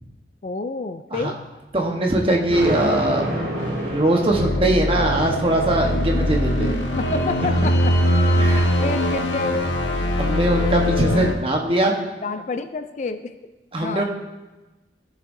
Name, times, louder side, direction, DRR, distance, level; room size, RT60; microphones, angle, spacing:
voice 1, 0.4-1.3 7.0-7.9 8.8-9.7 12.2-13.3 13.8-14.0, left 3 dB, 40° left, 9 dB, 0.4 m, -28 dB
voice 2, 1.7-3.3 3.6-6.8 8.4-8.7 10.2-11.9 13.7-14.0, right 1 dB, 30° right, 1 dB, 1.1 m, -21 dB
Thunder, 2.5-5.0, right 1 dB, 65° right, 2.1 m, -27 dB
sound 1, 4.3-11.3, left 1 dB, 85° left, 1.0 m, -21 dB
15.0 x 7.2 x 2.6 m, 1.1 s
head